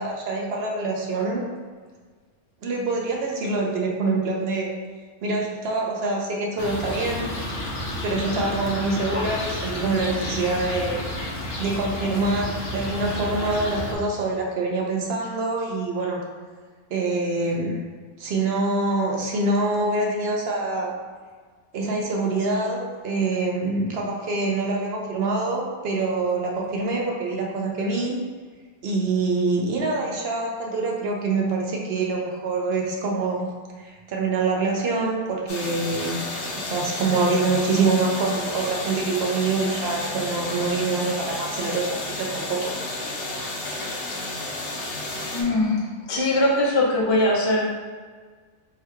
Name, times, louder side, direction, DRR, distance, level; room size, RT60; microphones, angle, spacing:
voice 1, 0.0-1.4 2.6-4.7 5.2-7.3 8.0-11.0 11.6-16.2 16.9-17.7 18.2-20.9 21.7-28.2 28.8-33.5 33.8-36.1 36.7-41.9 42.2-42.7, right 3 dB, 55° right, -1 dB, 0.7 m, -25 dB
sound 1, 6.6-14.0, left 1 dB, 75° left, 1.2 m, -31 dB
sound 2, 35.5-45.4, left 2 dB, 55° left, 0.8 m, -32 dB
voice 2, 45.3-47.7, left 1 dB, 35° left, -4 dB, 0.4 m, -21 dB
3.6 x 2.2 x 4.3 m, 1.5 s
omnidirectional pair, 1.5 m